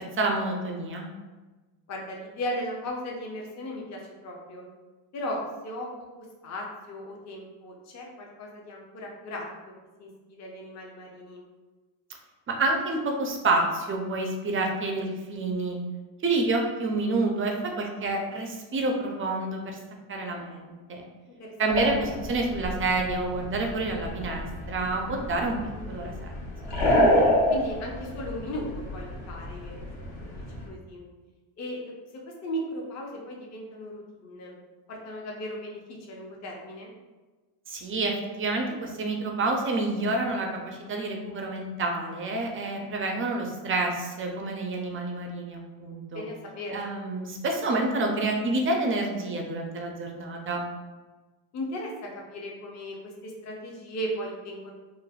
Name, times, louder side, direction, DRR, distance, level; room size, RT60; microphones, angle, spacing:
voice 1, 0.2-1.1 12.5-15.8 16.2-19.8 20.1-21.0 21.6-25.6 25.9-26.1 37.7-38.1 38.4-46.2 46.7-50.6, right 2 dB, 30° right, 2 dB, 0.3 m, -28 dB
voice 2, 1.9-4.7 5.1-9.5 10.0-11.5 21.4-21.7 25.7-26.1 27.5-29.9 30.1-30.3 30.7-31.1 31.6-31.8 32.3-34.6 34.9-35.8 36.1-36.9 46.1-46.8 51.5-54.7, equal, 35° left, -1 dB, 0.6 m, -37 dB
sound 1, 21.7-30.7, left 1 dB, 55° left, 0.8 m, -28 dB
3.2 x 2.0 x 2.3 m, 1.2 s
cardioid pair, 100°, 49 cm